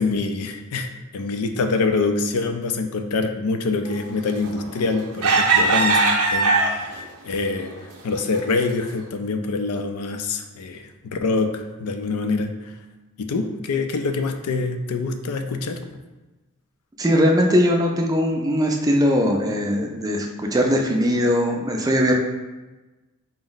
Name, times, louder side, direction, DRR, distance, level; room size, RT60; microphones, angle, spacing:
voice 1, 0.0-6.0 6.3-7.7 8.0-12.7 13.2-15.8, left 3 dB, 85° left, 6 dB, 0.4 m, -25 dB
sound 1, 4.4-4.8 5.2-7.0 7.6-7.7 8.2-8.4, right 3 dB, 85° right, 0.6 m, -19 dB
voice 2, 17.0-22.1, equal, 15° right, 2 dB, 0.3 m, -20 dB
4.3 x 2.0 x 3.8 m, 1.1 s
head